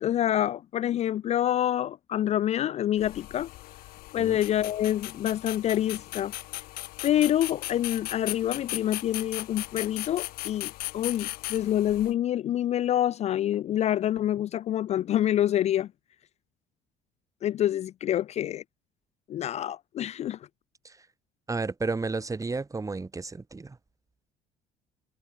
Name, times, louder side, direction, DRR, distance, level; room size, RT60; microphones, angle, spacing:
voice 1, 0.0-3.5 4.1-6.3 7.0-15.9 17.4-18.6 19.3-20.4, left 11 dB, 45° left, 0.4 m, -27 dB
sound 1, 3.0-12.1, left 19 dB, 70° left, 1.3 m, -38 dB
voice 2, 21.5-23.8, right 3 dB, 20° right, 2.7 m, -32 dB
supercardioid pair, 70°, 16 cm